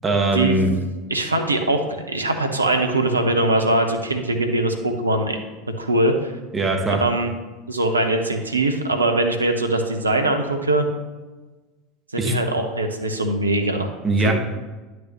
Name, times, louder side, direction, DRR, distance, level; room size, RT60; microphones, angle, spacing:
voice 1, 0.0-0.7 6.5-7.0 12.2-12.4 14.0-14.3, right 2 dB, 25° right, 2 dB, 1.4 m, -20 dB
voice 2, 1.1-5.4 5.8-6.3 6.9-7.3 7.7-10.9 12.1-13.9 14.2-14.3, right 2 dB, 85° right, 5 dB, 0.8 m, -21 dB
10.0 x 6.2 x 3.0 m, 1.2 s
figure-of-eight pair, 75°, 0 cm